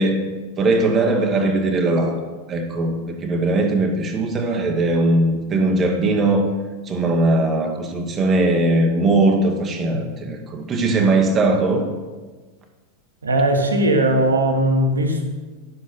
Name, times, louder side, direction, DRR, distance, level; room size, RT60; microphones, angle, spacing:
voice 1, 0.0-2.2 2.5-6.5 6.9-11.9, right 2 dB, 25° right, 2 dB, 1.1 m, -19 dB
voice 2, 13.2-15.2, right 1 dB, 75° right, 3 dB, 1.3 m, -19 dB
11.0 x 7.3 x 4.3 m, 1.3 s
figure-of-eight pair, 90°, 0 cm